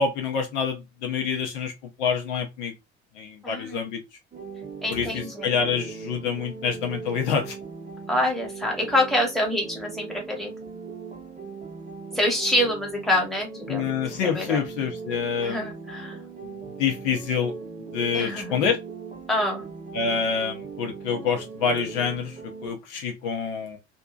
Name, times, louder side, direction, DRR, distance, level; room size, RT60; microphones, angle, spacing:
voice 1, 0.0-1.7 2.0-2.7 3.2-4.0 4.9-7.6 13.7-15.7 16.4-16.5 16.8-17.5 17.9-18.8 19.9-23.8, left 6 dB, 55° left, 0.6 m, -27 dB
voice 2, 3.4-3.9 4.8-5.6 8.1-10.5 12.1-14.6 15.4-16.2 18.1-18.6 19.3-19.7, left 1 dB, ahead, 1.2 m, -26 dB
sound 1, 4.3-22.7, right 5 dB, 20° right, 0.8 m, -39 dB
2.6 x 2.1 x 2.2 m
figure-of-eight pair, 55°, 34 cm